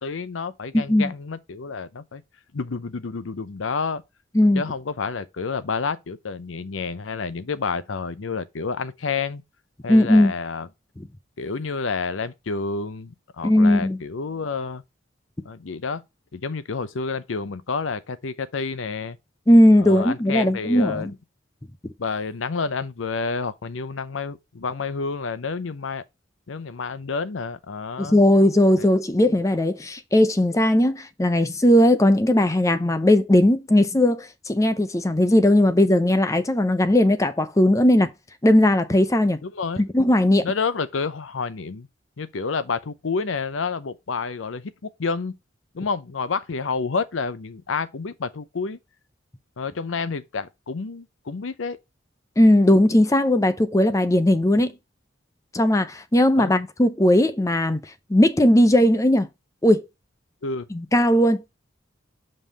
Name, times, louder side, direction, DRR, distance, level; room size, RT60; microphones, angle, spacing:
voice 1, 0.0-2.2 2.5-4.0 4.5-9.4 9.8-10.7 11.4-14.8 15.4-16.0 16.3-19.2 19.8-21.2 22.0-26.0 26.5-28.2 28.8-28.9 39.4-39.8 40.4-41.9 42.2-45.4 45.7-48.8 49.6-51.8 56.4-56.5 60.4-60.7, left 4 dB, 85° left, 0.7 m, -29 dB
voice 2, 0.7-1.1 4.3-4.6 9.9-10.3 13.4-14.0 19.5-21.1 21.8-21.9 28.0-38.1 38.4-39.4 39.9-40.5 52.4-54.7 55.5-57.8 58.1-59.3 59.6-59.9 60.7-61.4, left 1 dB, 15° left, 0.5 m, -18 dB
5.5 x 5.4 x 4.1 m
head